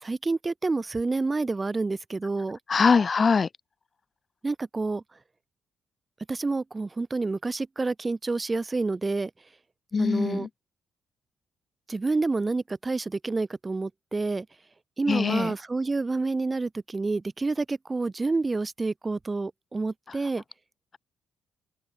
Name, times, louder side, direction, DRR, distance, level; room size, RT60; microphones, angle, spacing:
voice 1, 0.0-2.6 4.4-5.0 6.3-9.3 10.0-10.5 11.9-14.5 15.0-20.4, right 3 dB, 25° right, 1.5 m, -28 dB
voice 2, 2.7-3.5 9.9-10.5 15.1-15.5, left 5 dB, 35° left, 1.4 m, -22 dB
open air
cardioid pair, 90°, 0 cm